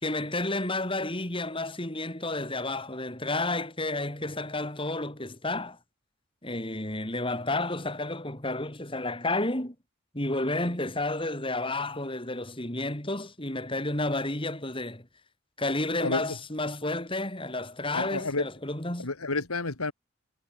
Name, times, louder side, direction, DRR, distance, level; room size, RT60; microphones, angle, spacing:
voice 1, 0.0-5.8 6.4-9.7 10.1-15.1 15.6-19.1, left 2 dB, 25° left, 4.2 m, -31 dB
voice 2, 16.0-16.4 17.9-18.5 19.0-19.9, left 3 dB, 90° left, 2.5 m, -30 dB
head